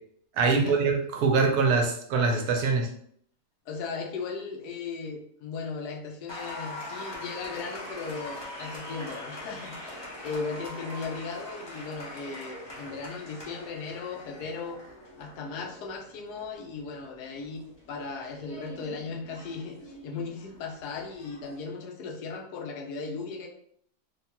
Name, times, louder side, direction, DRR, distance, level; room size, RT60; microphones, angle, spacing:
voice 1, 0.4-2.9, right 4 dB, 75° right, 3 dB, 1.1 m, -24 dB
voice 2, 3.7-14.8 15.2-23.5, left 4 dB, 85° left, 1 dB, 1.2 m, -37 dB
Applause, 6.3-21.6, left 1 dB, 25° left, 0.6 m, -43 dB
3.5 x 2.2 x 2.9 m, 0.66 s
omnidirectional pair, 1.7 m